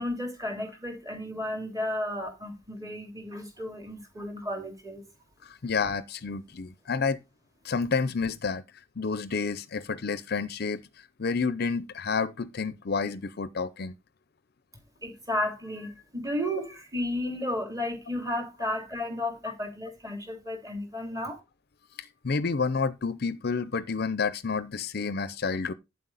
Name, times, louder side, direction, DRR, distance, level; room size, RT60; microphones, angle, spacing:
voice 1, 0.0-5.0 15.0-21.4, left 1 dB, 20° right, 3.1 m, -33 dB
voice 2, 5.4-7.2 7.6-8.6 9.0-10.8 11.2-13.9 22.0-25.7, left 4 dB, 55° left, 0.6 m, -29 dB
9.6 x 7.6 x 4.1 m
head